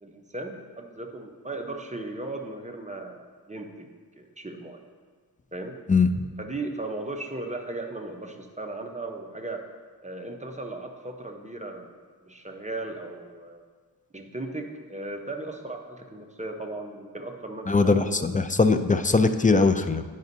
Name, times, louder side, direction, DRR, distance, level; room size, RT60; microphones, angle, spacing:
voice 1, 0.0-3.9 4.2-4.8 5.5-5.8 6.4-9.6 10.0-12.0 12.2-13.7 14.1-18.4, right 2 dB, 20° right, 3 dB, 0.7 m, -37 dB
voice 2, 17.7-20.0, left 4 dB, 20° left, 8 dB, 0.3 m, -21 dB
10.5 x 5.2 x 2.7 m, 1.5 s
wide cardioid pair, 40°, 38 cm